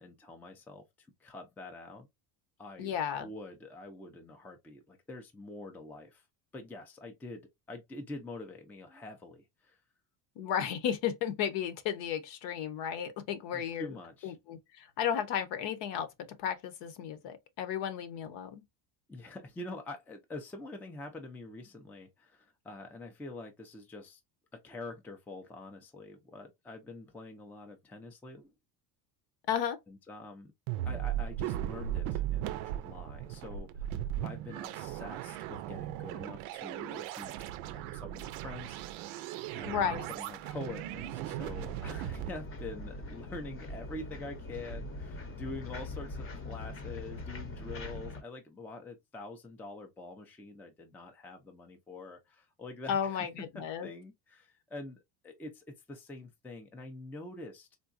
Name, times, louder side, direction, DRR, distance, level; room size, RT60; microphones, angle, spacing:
voice 1, 0.0-2.1 2.6-6.2 6.5-9.8 13.5-14.4 19.1-24.2 24.5-28.5 29.9-30.5 30.8-33.9 34.2-39.1 39.5-53.3 53.5-57.8, left 2 dB, 5° left, 0.4 m, -46 dB
voice 2, 2.8-3.3 10.4-13.9 14.2-16.1 16.4-18.6 29.5-29.8 39.7-40.1 52.9-53.9, left 8 dB, 60° left, 0.8 m, -33 dB
sound 1, 30.7-42.3, right 12 dB, 75° right, 0.6 m, -37 dB
sound 2, 40.2-48.2, left 2 dB, 25° left, 0.7 m, -43 dB
3.7 x 2.2 x 2.5 m
cardioid pair, 120°, 48 cm